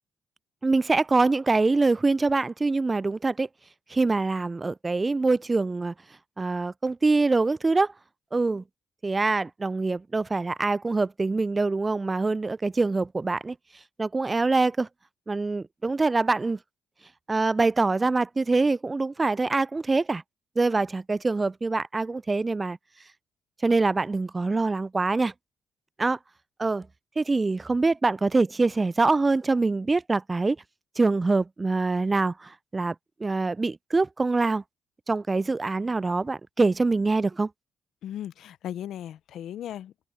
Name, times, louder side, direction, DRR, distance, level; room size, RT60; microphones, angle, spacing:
voice 1, 0.6-3.5 3.9-5.9 6.4-7.9 8.3-8.6 9.0-13.6 14.0-14.9 15.3-16.6 17.3-20.2 20.6-22.8 23.6-25.3 26.0-26.2 26.6-26.9 27.2-30.6 31.0-32.9 33.2-34.6 35.1-37.5, right 3 dB, 30° right, 0.3 m, -24 dB
voice 2, 38.0-40.1, left 11 dB, 75° left, 0.7 m, -37 dB
supercardioid pair, 50°, 0 cm